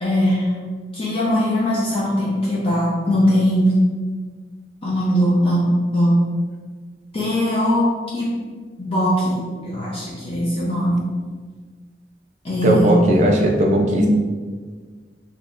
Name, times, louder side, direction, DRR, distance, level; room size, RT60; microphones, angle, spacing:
voice 1, 0.0-0.5 0.9-3.7 4.8-6.2 7.1-7.8 8.1-8.3 8.8-9.4 9.6-11.0 12.4-13.0, equal, 35° left, -7 dB, 0.6 m, -20 dB
voice 2, 12.6-14.1, right 1 dB, 40° right, 1 dB, 0.5 m, -17 dB
4.0 x 2.9 x 2.5 m, 1.5 s
head